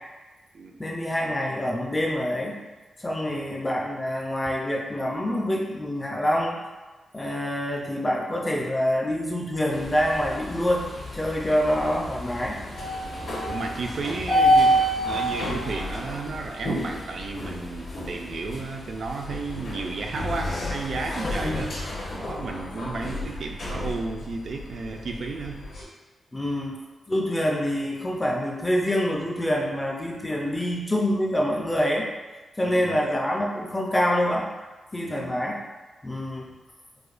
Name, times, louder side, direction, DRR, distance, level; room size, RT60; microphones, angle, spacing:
voice 1, 0.8-2.6 3.0-6.6 7.1-10.9 11.1-12.6 21.2-21.8 23.1-23.3 26.3-26.8 27.1-32.1 32.6-34.5 34.9-35.6 36.0-36.5, equal, 15° left, -1 dB, 0.4 m, -26 dB
sound 1, 9.7-25.8, equal, 60° left, 1.1 m, -29 dB
voice 2, 13.4-14.8 15.0-21.9 22.2-25.6 32.6-33.0 35.1-35.3, right 3 dB, 55° right, 2 dB, 0.3 m, -33 dB
4.8 x 2.1 x 2.4 m, 1.2 s
wide cardioid pair, 165°, 0 cm